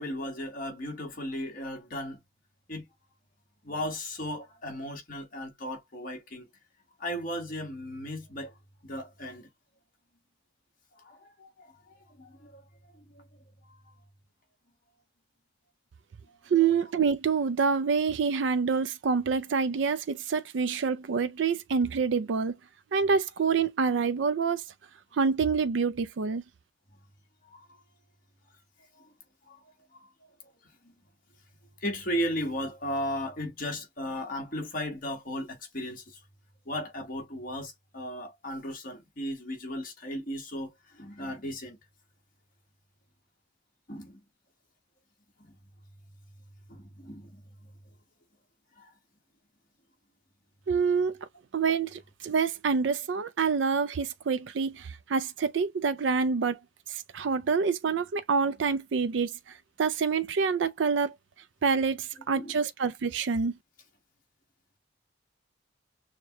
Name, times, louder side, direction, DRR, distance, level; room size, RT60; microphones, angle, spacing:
voice 1, 0.0-2.2 2.7-2.9 3.6-6.4 7.0-8.5 8.8-9.5 11.0-12.6 12.9-13.3 13.6-13.9 16.3-16.4 27.4-27.7 29.0-29.1 29.5-29.6 29.9-30.1 30.8-30.9 31.8-36.2 36.6-41.8 43.9-44.2 45.4-45.5 46.7-47.4 48.8-48.9 62.3-62.6, equal, 50° left, 1.5 m, -36 dB
voice 2, 16.5-22.5 22.9-24.6 25.2-26.4 50.7-51.2 51.5-56.6 56.9-59.3 59.8-61.1 61.6-63.5, right 5 dB, 80° right, 0.4 m, -27 dB
6.4 x 2.2 x 2.9 m
head